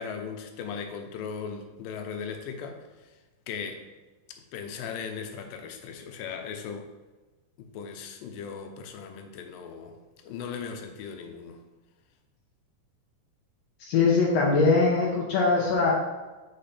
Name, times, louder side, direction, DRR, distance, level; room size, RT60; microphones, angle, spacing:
voice 1, 0.0-2.9 3.5-3.8 4.5-6.9 7.6-10.0 10.2-11.6, left 6 dB, 90° left, 5 dB, 2.4 m, -38 dB
voice 2, 13.9-15.9, left 4 dB, 65° left, -2 dB, 1.7 m, -22 dB
5.6 x 5.1 x 4.2 m, 1.2 s
omnidirectional pair, 3.8 m